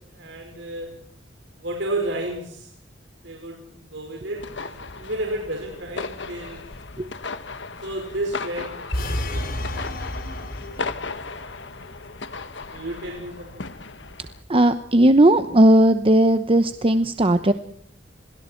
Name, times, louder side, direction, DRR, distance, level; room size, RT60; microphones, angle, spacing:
voice 1, 0.1-0.9 1.6-2.7 3.2-6.7 7.8-9.8 10.4-12.1 12.7-13.7, right 1 dB, 90° right, 1 dB, 5.2 m, -33 dB
sound 1, 4.4-14.4, left 4 dB, 85° left, 1.4 m, -36 dB
sound 2, 8.9-11.2, left 1 dB, 55° left, 2.4 m, -29 dB
voice 2, 14.5-17.5, right 1 dB, 30° right, 10 dB, 0.9 m, -16 dB
29.5 x 22.5 x 4.5 m, 0.64 s
head